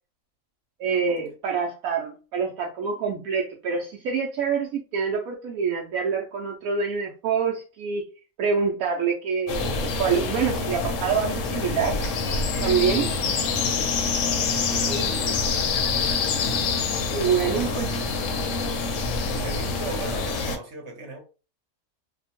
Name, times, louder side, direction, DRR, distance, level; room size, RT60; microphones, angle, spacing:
voice 1, 0.8-8.0 8.4-12.0 12.6-13.1 14.9-15.4 17.1-18.0, right 6 dB, 75° right, 1.0 m, -26 dB
sound 1, 9.5-20.6, left 4 dB, 70° left, 0.9 m, -26 dB
voice 2, 14.6-15.5 17.4-17.8 19.4-21.2, right 3 dB, 55° right, 1.1 m, -38 dB
2.8 x 2.1 x 2.8 m
omnidirectional pair, 1.5 m